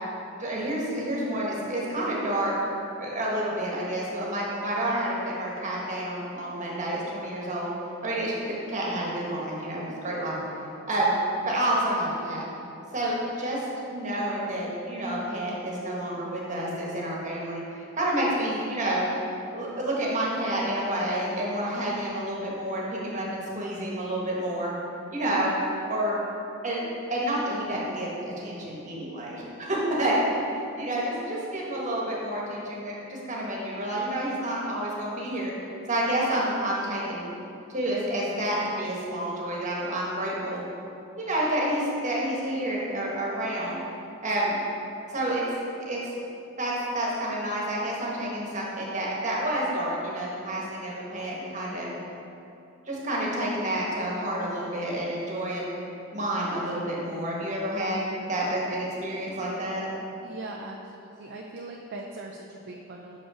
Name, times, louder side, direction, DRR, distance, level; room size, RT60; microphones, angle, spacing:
voice 1, 0.4-2.5 3.0-7.7 8.0-10.3 10.9-11.2 11.5-12.5 12.9-13.6 13.9-19.1 19.5-24.7 25.1-25.5 25.8-26.2 26.6-30.2 30.8-35.5 35.9-37.3 37.7-40.6 41.1-43.8 44.2-44.6 45.1-45.4 45.8-46.2 46.6-51.9 52.9-55.7 56.1-59.9, right 1 dB, 35° right, -4 dB, 1.4 m, -29 dB
voice 2, 60.2-63.2, right 2 dB, 50° right, 0 dB, 0.4 m, -40 dB
6.1 x 5.2 x 4.9 m, 2.8 s
head